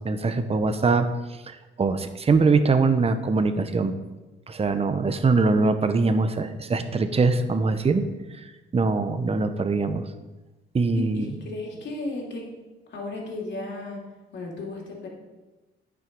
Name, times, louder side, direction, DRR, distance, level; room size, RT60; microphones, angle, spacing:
voice 1, 0.0-1.1 1.5-3.9 4.5-8.0 8.4-8.5 8.7-10.1 10.7-11.3, right 4 dB, 30° right, 9 dB, 0.9 m, -22 dB
voice 2, 10.9-12.6 12.9-15.1, left 2 dB, 65° left, -2 dB, 3.0 m, -35 dB
9.8 x 6.1 x 5.4 m, 1.1 s
cardioid pair, 90°, 20 cm